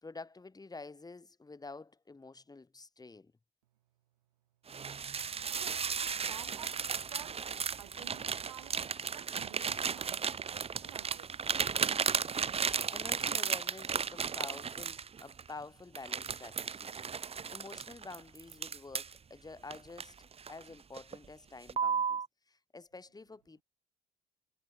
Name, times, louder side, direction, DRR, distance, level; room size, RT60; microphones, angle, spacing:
voice 1, 0.0-3.3 12.6-16.9 17.2-23.6, left 3 dB, 20° left, 2.6 m, -49 dB
sound 1, 4.7-15.5 15.9-19.2 19.7-20.6 21.0-21.2 21.7-22.3, right 6 dB, 30° right, 1.0 m, -35 dB
voice 2, 5.5-6.8 7.1-7.4 7.8-11.4, right 14 dB, 85° right, 5.0 m, -53 dB
hypercardioid pair, 55°, 20 cm